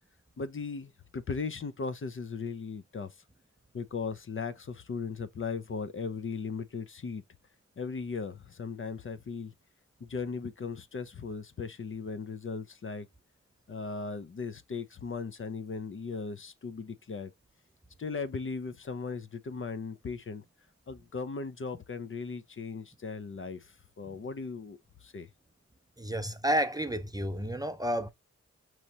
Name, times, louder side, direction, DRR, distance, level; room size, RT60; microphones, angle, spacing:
voice 1, 0.4-3.1 3.7-7.2 7.8-9.5 10.0-13.1 13.7-17.3 18.0-20.4 20.9-25.3, left 4 dB, 45° left, 0.7 m, -37 dB
voice 2, 26.0-28.1, equal, 15° right, 0.5 m, -30 dB
5.3 x 3.2 x 2.8 m
wide cardioid pair, 80°, 29 cm